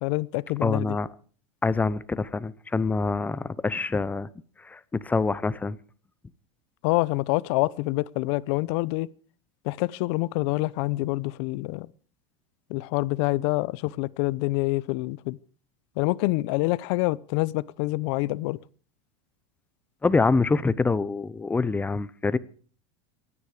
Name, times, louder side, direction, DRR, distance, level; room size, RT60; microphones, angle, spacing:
voice 1, 0.0-1.0 6.8-9.1 9.6-11.9 12.7-15.4 16.0-18.6, left 21 dB, 60° left, 0.7 m, -26 dB
voice 2, 0.6-1.1 1.6-4.3 4.6-5.8 20.0-22.4, left 3 dB, 10° left, 0.7 m, -25 dB
23.5 x 9.8 x 4.9 m
supercardioid pair, 130°, 16 cm